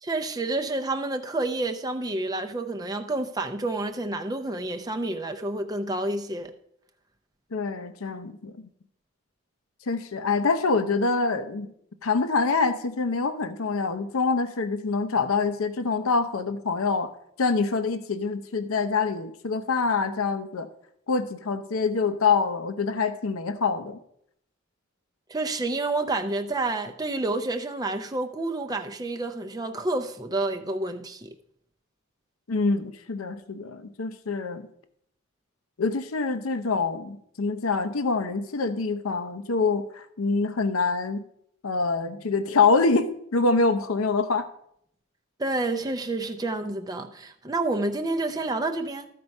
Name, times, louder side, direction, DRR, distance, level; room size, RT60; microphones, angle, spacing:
voice 1, 0.0-6.5 25.3-31.3 45.4-49.1, right 2 dB, 20° right, 0.5 m, -29 dB
voice 2, 7.5-8.5 9.9-11.7 12.0-17.1 17.4-20.7 21.1-24.0 32.5-34.7 35.8-41.2 41.6-44.5, left 4 dB, 80° left, 0.7 m, -25 dB
13.5 x 4.6 x 5.3 m
head